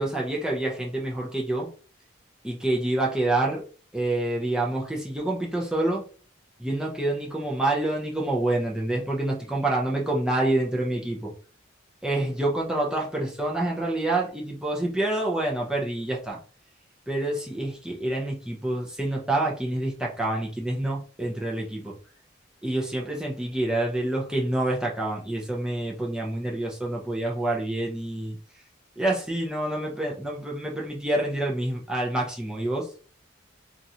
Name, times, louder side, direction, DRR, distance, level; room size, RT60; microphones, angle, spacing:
voice 1, 0.0-1.7 2.4-3.6 3.9-6.0 6.6-11.3 12.0-16.4 17.1-21.9 22.6-28.4 29.0-32.9, right 1 dB, 5° right, -3 dB, 0.6 m, -27 dB
3.0 x 2.5 x 2.7 m, 0.38 s
head